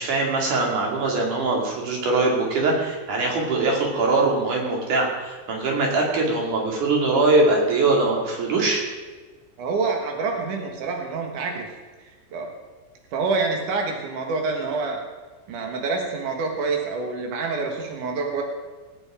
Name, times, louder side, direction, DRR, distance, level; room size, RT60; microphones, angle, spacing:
voice 1, 0.0-8.8, right 3 dB, 45° right, 0 dB, 3.3 m, -22 dB
voice 2, 9.6-11.7 12.3-12.5 13.1-15.0 15.5-18.4, right 4 dB, 80° right, 2 dB, 1.8 m, -27 dB
20.0 x 9.1 x 4.9 m, 1.3 s
omnidirectional pair, 6.0 m